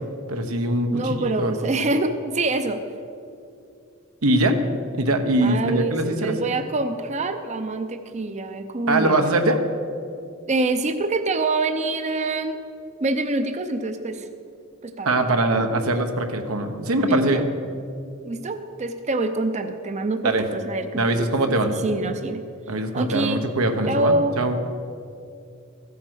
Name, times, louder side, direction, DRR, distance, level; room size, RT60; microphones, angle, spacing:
voice 1, 0.3-1.5 4.2-4.6 5.0-6.3 8.9-9.6 15.0-17.4 20.2-20.4 21.0-21.7 22.7-24.6, right 1 dB, 90° right, 6 dB, 1.0 m, -22 dB
voice 2, 0.9-2.8 5.4-9.3 10.5-12.6 13.0-14.3 14.8-15.2 17.1-17.4 18.2-22.4 22.9-23.5 23.9-24.3, right 2 dB, 35° right, 8 dB, 0.5 m, -25 dB
14.5 x 8.5 x 6.3 m, 2.6 s
head